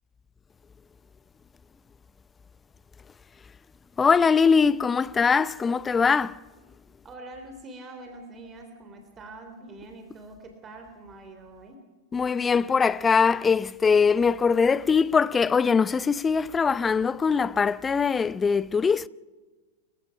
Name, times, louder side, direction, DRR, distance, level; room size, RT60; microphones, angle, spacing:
voice 1, 4.0-6.4 12.1-19.1, left 5 dB, 20° left, 0.6 m, -22 dB
voice 2, 7.0-11.8, right 2 dB, 25° right, 3.3 m, -44 dB
29.5 x 16.0 x 5.8 m
hypercardioid pair, 100°, 0 cm